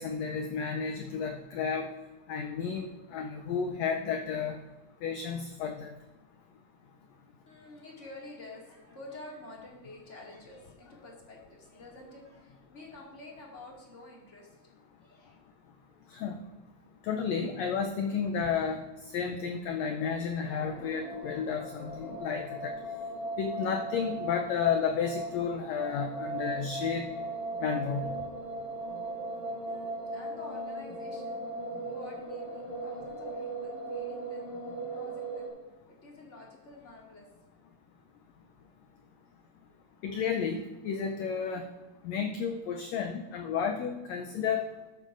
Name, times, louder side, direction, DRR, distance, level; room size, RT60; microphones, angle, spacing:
voice 1, 0.0-1.9 2.3-4.6 5.0-5.9 16.1-16.3 17.0-18.8 19.1-22.7 23.4-27.1 27.6-28.0 40.0-41.7 42.0-44.7, left 6 dB, 85° left, 5 dB, 1.5 m, -32 dB
voice 2, 7.5-14.7 15.0-15.4 29.7-31.4 31.8-35.5 35.9-37.3, left 2 dB, 25° left, -3 dB, 1.9 m, -49 dB
sound 1, 20.4-35.5, right 1 dB, 65° left, 3.4 m, -38 dB
13.0 x 9.2 x 2.5 m, 1.2 s
omnidirectional pair, 3.7 m